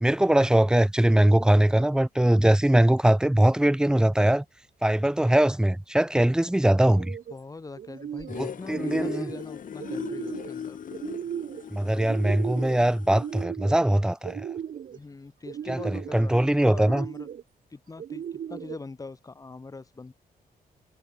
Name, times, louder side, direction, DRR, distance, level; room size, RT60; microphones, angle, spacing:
voice 1, 0.0-4.4 4.8-7.2 8.4-9.3 11.7-14.4 15.7-17.0, right 1 dB, 5° right, 1.0 m, -21 dB
sound 1, 6.9-7.4 7.8-8.4 8.7-9.4 9.8-10.5 10.9-11.6 12.0-12.8 13.1-13.8 14.2-15.0 15.5-16.2 16.7-17.4 18.0-18.8, right 9 dB, 60° right, 1.0 m, -36 dB
voice 2, 7.3-10.8 14.9-17.3 17.7-20.1, left 3 dB, 20° left, 2.0 m, -42 dB
sound 2, 8.3-13.4, left 8 dB, 60° left, 2.4 m, -38 dB
wide cardioid pair, 135°, 16 cm